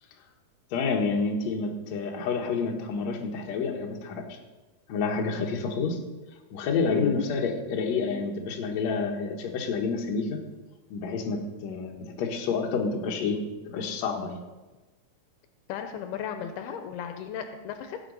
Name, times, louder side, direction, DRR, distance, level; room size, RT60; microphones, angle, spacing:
voice 1, 0.7-4.4 4.9-6.0 6.5-10.4 10.9-13.4 13.7-14.4, left 4 dB, 60° left, 1 dB, 1.9 m, -29 dB
voice 2, 6.8-7.2 15.7-18.1, left 8 dB, 85° left, 7 dB, 2.6 m, -35 dB
16.5 x 8.1 x 4.0 m, 1.1 s
omnidirectional pair, 4.7 m